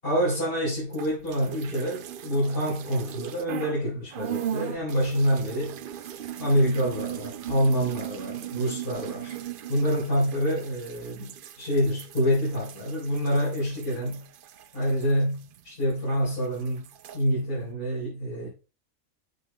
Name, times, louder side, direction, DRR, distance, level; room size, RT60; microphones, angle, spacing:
voice 1, 0.0-5.8 6.4-9.4 9.7-14.2 14.7-16.9 17.1-18.5, equal, 45° left, 4.2 m, -27 dB
sound 1, 0.9-3.8 4.1-16.0 16.3-17.2, right 11 dB, 60° right, 0.6 m, -38 dB
8.1 x 7.9 x 2.3 m
omnidirectional pair, 1.3 m